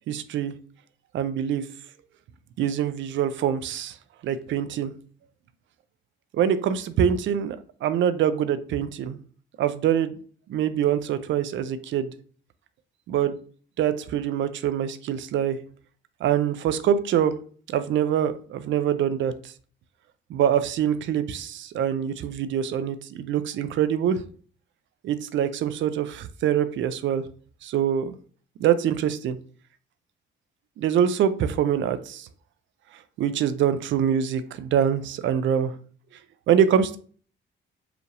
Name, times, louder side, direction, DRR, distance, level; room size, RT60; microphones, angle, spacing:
voice 1, 0.1-0.5 1.1-1.6 2.6-3.9 4.2-4.9 6.3-9.2 9.6-10.1 10.5-12.1 13.1-13.3 13.8-15.6 16.2-17.3 17.7-19.3 20.3-24.2 25.0-27.2 27.6-28.1 28.6-29.4 30.8-32.3 33.2-35.7 36.5-37.0, right 9 dB, 70° right, 12 dB, 0.5 m, -24 dB
4.8 x 2.5 x 3.3 m, 0.43 s
cardioid pair, 90°, 20 cm